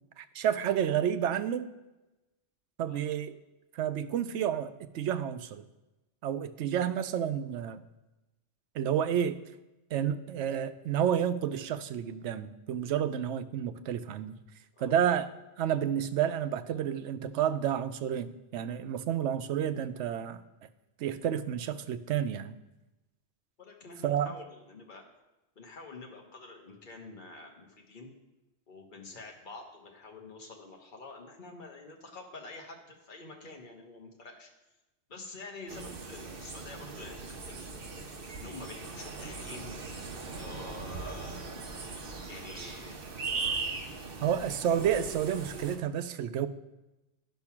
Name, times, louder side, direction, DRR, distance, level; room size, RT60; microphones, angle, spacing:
voice 1, 0.2-1.7 2.8-3.4 3.7-5.7 6.2-7.8 8.7-9.4 9.9-14.4 14.8-15.3 15.6-20.4 21.0-22.5 24.0-24.3 44.2-46.5, right 9 dB, 85° right, 11 dB, 0.9 m, -30 dB
voice 2, 23.6-25.0 25.5-28.1 28.7-34.5 35.1-37.8 38.1-39.7 40.3-41.5 42.3-43.0, left 3 dB, 45° left, 1 dB, 1.4 m, -47 dB
sound 1, 35.7-45.8, right 4 dB, 55° right, 1.1 m, -39 dB
10.5 x 5.5 x 5.9 m, 1.0 s
omnidirectional pair, 1.2 m